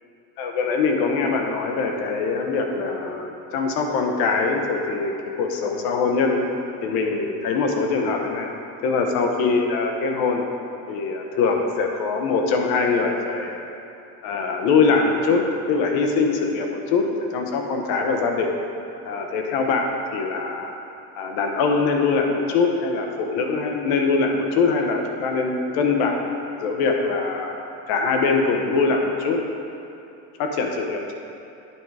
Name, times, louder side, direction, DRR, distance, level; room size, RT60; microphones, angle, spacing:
voice 1, 0.4-6.5 6.8-8.5 8.8-10.4 10.9-13.7 14.2-18.5 19.0-19.9 20.1-20.7 21.2-26.3 26.6-27.6 27.9-29.4 30.4-31.1, left 4 dB, 80° left, 3 dB, 1.0 m, -23 dB
9.9 x 4.6 x 4.8 m, 2.8 s
cardioid pair, 150°, 36 cm